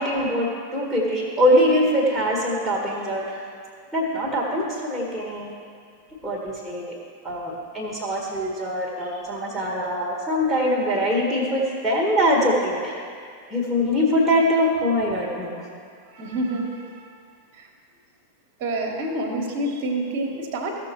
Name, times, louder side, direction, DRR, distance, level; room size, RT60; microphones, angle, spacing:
voice 1, 0.0-3.4 3.9-5.5 6.2-6.9 7.2-13.1 13.5-15.7, equal, 5° right, -4 dB, 1.9 m, -23 dB
voice 2, 16.0-17.1 17.5-17.7 18.6-20.8, right 1 dB, 40° right, 1 dB, 1.6 m, -28 dB
15.5 x 6.7 x 3.2 m, 2.2 s
figure-of-eight pair, 90°, 0 cm